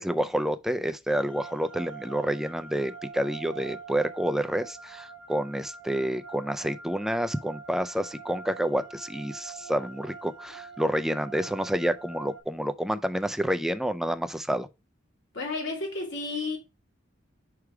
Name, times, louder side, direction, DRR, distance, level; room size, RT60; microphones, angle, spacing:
voice 1, 0.0-14.7, equal, ahead, 0.4 m, -29 dB
sound 1, 1.1-12.4, right 5 dB, 75° right, 1.0 m, -45 dB
voice 2, 15.3-16.6, left 3 dB, 65° left, 2.4 m, -32 dB
5.0 x 4.8 x 4.6 m
head